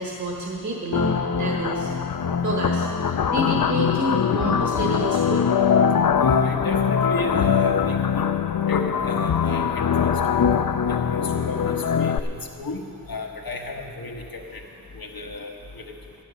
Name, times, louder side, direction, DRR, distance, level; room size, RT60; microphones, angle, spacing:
voice 1, 0.0-1.9 2.4-5.8 15.2-15.3, right 1 dB, 55° right, -1 dB, 1.4 m, -29 dB
sound 1, 0.9-12.2, left 7 dB, 70° left, 0.5 m, -22 dB
voice 2, 6.2-8.3 8.7-10.1 10.9-12.2 12.6-12.8 13.1-14.6 14.9-15.9, left 3 dB, 85° left, 1 dB, 1.3 m, -32 dB
12.5 x 10.5 x 6.5 m, 2.5 s
wide cardioid pair, 65°, 35 cm